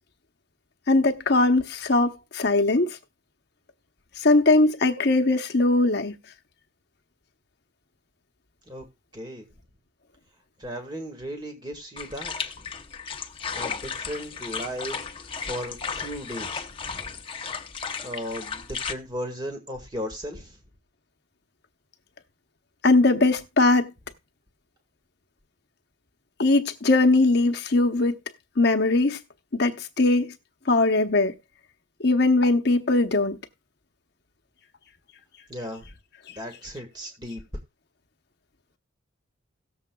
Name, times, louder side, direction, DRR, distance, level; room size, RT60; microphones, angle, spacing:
voice 1, 0.9-3.0 4.2-6.2 22.8-23.9 26.4-28.2 28.6-29.2 29.5-30.3 30.7-31.3 32.0-33.4, left 2 dB, 50° left, 0.9 m, -20 dB
voice 2, 9.1-9.5 10.6-12.7 13.6-15.1 15.4-17.2 18.0-20.6 35.5-35.9 36.4-37.4, equal, 20° right, 1.8 m, -36 dB
sound 1, 12.0-18.9, left 6 dB, 25° left, 0.7 m, -34 dB
18.0 x 7.2 x 2.3 m
head